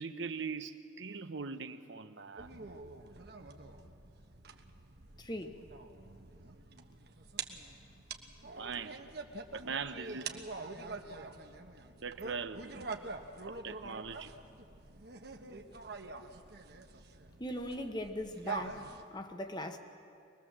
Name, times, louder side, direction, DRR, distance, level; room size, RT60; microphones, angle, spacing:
voice 1, 0.0-2.7 8.5-9.0 9.5-10.4 12.0-12.6 13.4-14.3, right 5 dB, 75° right, 0.9 m, -41 dB
sound 1, 2.4-19.0, right 4 dB, 55° right, 1.3 m, -46 dB
voice 2, 5.2-5.6 17.4-19.8, left 1 dB, 20° left, 1.1 m, -40 dB
24.0 x 20.5 x 7.4 m
head